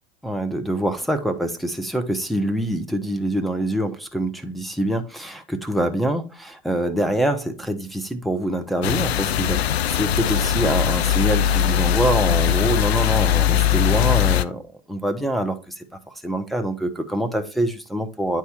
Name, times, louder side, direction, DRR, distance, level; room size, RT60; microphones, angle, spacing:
voice 1, 0.2-9.6 9.9-14.6 14.9-18.4, right 1 dB, ahead, 0.9 m, -25 dB
sound 1, 8.8-14.4, left 10 dB, 85° left, 0.5 m, -20 dB
9.4 x 3.5 x 4.4 m
hypercardioid pair, 95°, 31 cm